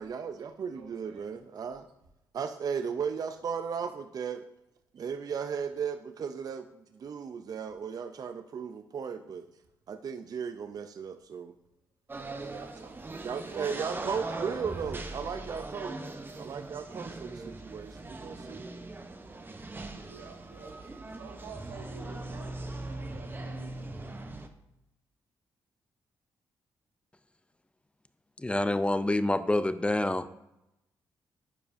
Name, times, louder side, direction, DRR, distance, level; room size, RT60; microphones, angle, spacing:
voice 1, 0.0-1.9 2.3-4.4 4.9-9.5 9.9-11.5 13.2-16.0 16.4-18.7, right 6 dB, 50° right, 8 dB, 0.4 m, -36 dB
voice 2, 0.6-1.3 12.4-12.9 13.5-15.4 20.0-22.5 22.9-23.6, right 5 dB, 90° right, 4 dB, 1.0 m, -49 dB
sound 1, 12.1-24.5, right 2 dB, 25° right, 0.7 m, -40 dB
voice 3, 28.4-30.4, left 1 dB, 15° left, 12 dB, 0.4 m, -27 dB
9.7 x 4.8 x 2.6 m, 0.89 s
supercardioid pair, 60°, 8 cm